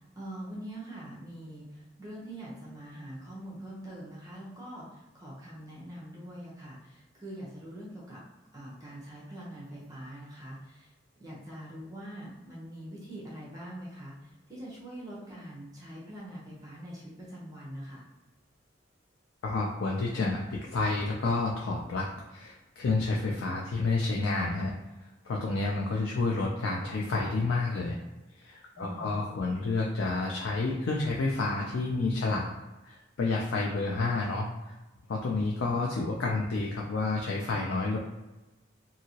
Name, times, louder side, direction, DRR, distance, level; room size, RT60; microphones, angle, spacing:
voice 1, 0.0-8.2 8.5-10.9 11.2-18.0 28.7-29.1, right 1 dB, 20° right, -6 dB, 0.7 m, -43 dB
voice 2, 19.4-22.1 22.3-24.8 25.2-28.0 28.4-32.5 32.8-34.5 35.1-38.0, left 3 dB, 80° left, -1 dB, 0.4 m, -29 dB
2.8 x 2.7 x 2.8 m, 1.1 s
head